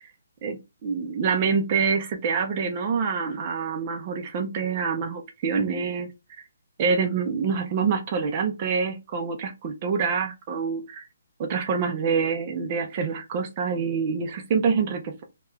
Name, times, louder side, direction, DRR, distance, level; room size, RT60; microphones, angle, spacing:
voice 1, 0.4-6.1 6.8-11.1 11.4-15.2, right 5 dB, 20° right, 0.4 m, -26 dB
2.7 x 2.3 x 3.2 m
hypercardioid pair, 175°, 0 cm